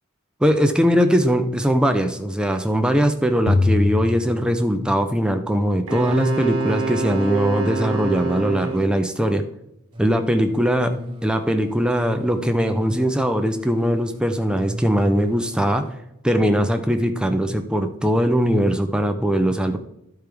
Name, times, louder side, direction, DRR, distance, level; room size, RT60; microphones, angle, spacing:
voice 1, 0.4-9.4 10.0-15.9 16.2-19.8, equal, 5° right, 6 dB, 0.5 m, -20 dB
sound 1, 3.5-5.3, left 3 dB, 65° left, 0.5 m, -23 dB
Wind instrument woodwind instrument, 5.9-9.0, right 4 dB, 85° right, 1.4 m, -26 dB
sound 2, 9.9-15.9, right 1 dB, 20° right, 0.8 m, -37 dB
13.5 x 4.5 x 3.5 m, 0.82 s
head